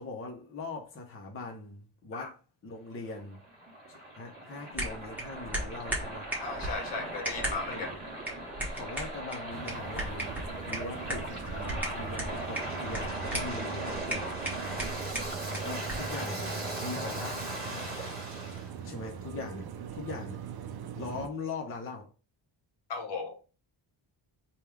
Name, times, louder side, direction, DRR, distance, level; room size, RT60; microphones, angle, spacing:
voice 1, 0.0-3.4 3.9-6.3 7.7-8.0 8.7-10.4 10.6-14.3 15.5-18.0 18.8-20.4 20.9-22.1, left 3 dB, 30° left, 0.7 m, -41 dB
Waves surf, 2.9-18.7, right 1 dB, 20° right, 1.6 m, -39 dB
sound 1, 4.7-16.1, right 1 dB, 5° right, 1.0 m, -38 dB
voice 2, 6.4-7.9 22.9-23.4, left 4 dB, 60° left, 0.9 m, -36 dB
sound 2, 9.5-21.3, right 7 dB, 55° right, 0.5 m, -41 dB
3.5 x 2.3 x 4.5 m
wide cardioid pair, 175°, 47 cm